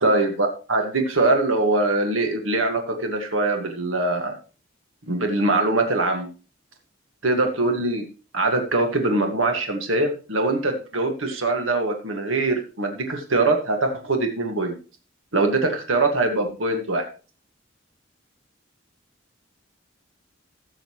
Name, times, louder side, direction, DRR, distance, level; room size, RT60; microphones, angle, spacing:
voice 1, 0.0-4.4 5.1-6.3 7.2-8.0 8.3-14.7 15.3-17.1, right 2 dB, 85° right, 4 dB, 1.9 m, -22 dB
15.5 x 6.6 x 3.1 m, 0.34 s
head